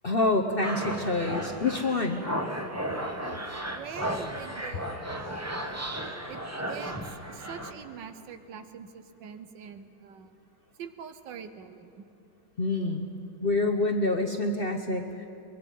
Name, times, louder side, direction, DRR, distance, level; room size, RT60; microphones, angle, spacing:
voice 1, 0.0-2.2 12.6-13.1 13.4-15.3, left 2 dB, 50° left, 5 dB, 0.7 m, -27 dB
sound 1, 0.6-7.7, right 1 dB, 10° right, 0.8 m, -34 dB
voice 2, 3.2-5.0 6.3-6.4 6.7-10.3 10.8-12.0, right 7 dB, 75° right, 9 dB, 1.5 m, -44 dB
23.5 x 21.5 x 5.4 m, 2.8 s
omnidirectional pair, 2.0 m